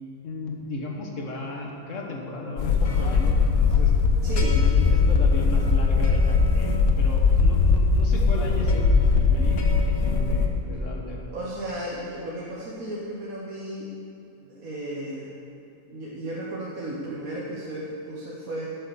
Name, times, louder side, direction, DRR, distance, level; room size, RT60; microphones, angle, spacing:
voice 1, 0.2-3.9 4.5-11.2, left 2 dB, 60° left, 0 dB, 1.7 m, -35 dB
sound 1, 2.6-10.5, left 4 dB, 85° left, 1.5 m, -20 dB
voice 2, 4.2-4.7 11.3-13.9 14.4-15.3 15.9-18.8, right 1 dB, 85° right, -4 dB, 1.6 m, -34 dB
12.5 x 6.6 x 7.1 m, 2.9 s
omnidirectional pair, 1.4 m